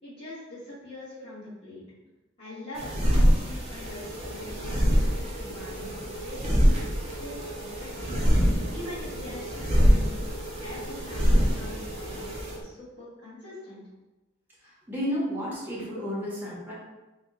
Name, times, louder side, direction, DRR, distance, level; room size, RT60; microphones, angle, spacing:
voice 1, 0.0-1.8 2.4-8.1 8.7-10.3 10.6-12.3 12.6-13.8, left 1 dB, 30° left, -13 dB, 1.3 m, -43 dB
sound 1, 2.7-12.6, equal, 30° right, 0.5 m, -25 dB
sound 2, 3.8-12.6, right 1 dB, 70° left, 0.4 m, -41 dB
voice 2, 14.6-16.7, equal, 10° right, -6 dB, 0.8 m, -32 dB
2.8 x 2.2 x 3.5 m, 1.1 s
head